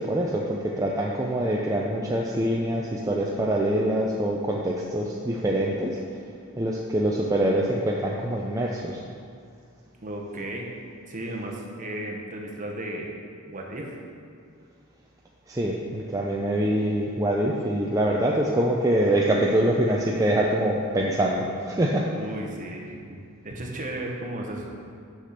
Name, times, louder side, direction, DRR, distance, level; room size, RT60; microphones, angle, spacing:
voice 1, 0.1-6.0 6.6-9.0 15.5-22.1, right 1 dB, 15° right, -2 dB, 0.5 m, -24 dB
voice 2, 10.0-10.7 11.1-13.1 13.5-14.0 22.1-23.2 23.4-24.7, right 1 dB, 40° right, 0 dB, 1.1 m, -34 dB
6.3 x 5.9 x 6.5 m, 2.4 s
head